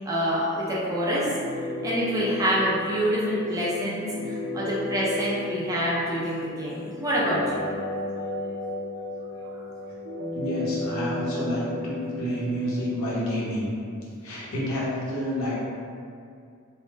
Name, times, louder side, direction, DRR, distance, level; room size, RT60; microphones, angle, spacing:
voice 1, 0.1-1.3 1.8-7.7, equal, 15° right, -7 dB, 0.3 m, -26 dB
sound 1, 1.2-13.2, left 2 dB, 90° right, 0.4 m, -34 dB
voice 2, 10.3-13.7 14.2-15.5, equal, 75° left, -7 dB, 0.7 m, -29 dB
2.1 x 2.0 x 3.1 m, 2.4 s
head